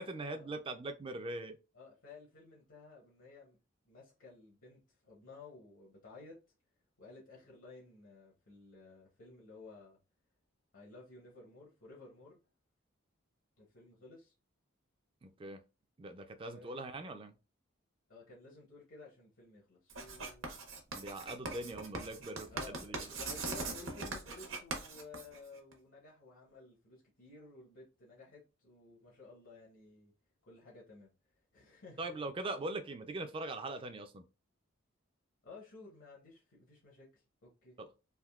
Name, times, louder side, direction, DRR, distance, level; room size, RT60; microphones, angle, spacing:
voice 1, 0.0-1.6 15.2-15.6 16.0-17.3 20.9-23.2 32.0-34.2 37.8-37.9, right 2 dB, 25° right, 0.3 m, -41 dB
voice 2, 1.7-3.6 3.8-6.4 7.0-10.0 10.7-12.4 13.6-14.3 16.4-16.8 18.1-20.6 22.5-30.1 30.5-31.1 31.5-32.1 35.4-37.8, left 3 dB, 70° left, 1.0 m, -55 dB
Writing, 19.9-25.7, right 3 dB, 70° right, 0.8 m, -41 dB
3.5 x 2.6 x 2.3 m
head